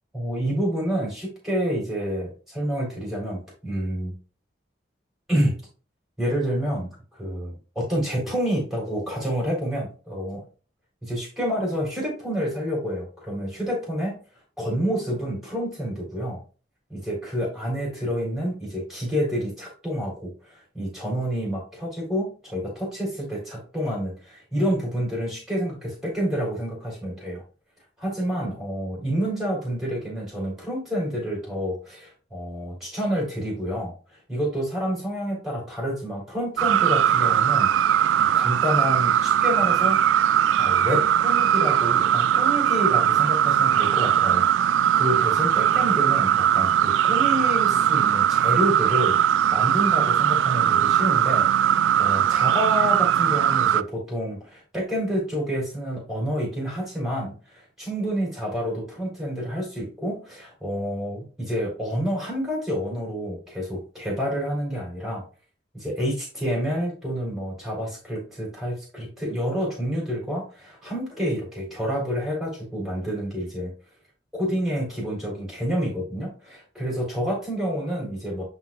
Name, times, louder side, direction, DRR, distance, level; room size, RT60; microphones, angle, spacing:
voice 1, 0.1-4.1 5.3-5.6 6.2-6.9 7.2-10.4 11.0-14.2 14.6-16.4 16.9-27.4 28.0-33.9 34.3-37.7 38.2-40.0 40.6-49.2 49.5-51.5 52.0-65.2 65.7-73.7 74.4-78.4, equal, ahead, -3 dB, 3.9 m, -28 dB
sound 1, 36.6-53.8, right 10 dB, 85° right, 0.3 m, -20 dB
10.5 x 4.1 x 2.5 m, 0.36 s
head